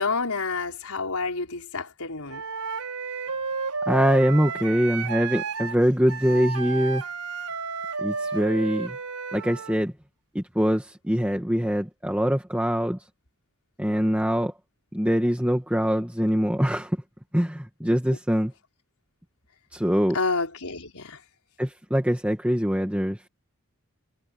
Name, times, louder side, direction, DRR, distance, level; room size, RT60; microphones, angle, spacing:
voice 1, 0.0-2.4 18.1-18.2 20.1-21.2, left 4 dB, 80° left, 4.6 m, -29 dB
Wind instrument woodwind instrument, 2.3-9.8, right 5 dB, 85° right, 5.3 m, -32 dB
voice 2, 3.9-7.0 8.0-9.0 9.3-9.9 10.4-13.0 13.8-14.5 14.9-16.9 17.3-18.5 19.7-20.2 21.6-23.3, equal, 5° right, 1.9 m, -23 dB
head